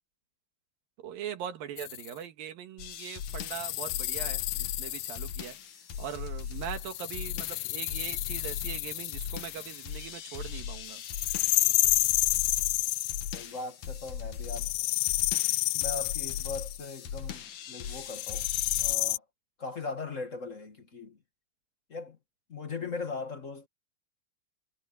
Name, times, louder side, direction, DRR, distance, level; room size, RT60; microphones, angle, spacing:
voice 1, 1.0-5.6 6.0-11.0 11.3-11.4 22.8-22.9, right 9 dB, 80° right, 3.4 m, -41 dB
sound 1, 1.8-2.1 3.3-5.5 6.7-9.9 11.0-13.5 14.4-16.8 18.1-19.2, left 19 dB, 85° left, 1.8 m, -30 dB
sound 2, 2.8-19.0, left 7 dB, 60° left, 2.8 m, -40 dB
voice 2, 13.3-14.7 15.7-18.5 18.8-19.2 19.6-21.2 21.9-22.2 22.5-23.7, left 4 dB, 45° left, 1.0 m, -39 dB
omnidirectional pair, 4.1 m